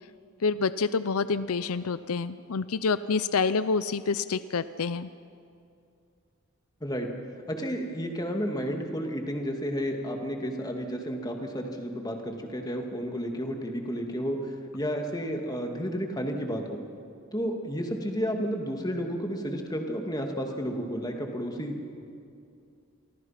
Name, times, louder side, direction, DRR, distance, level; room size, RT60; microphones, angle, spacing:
voice 1, 0.4-5.1, left 4 dB, 80° left, 14 dB, 0.6 m, -27 dB
voice 2, 7.5-16.8 17.3-22.0, equal, 15° left, 3 dB, 2.3 m, -32 dB
29.5 x 23.5 x 5.9 m, 2.5 s
head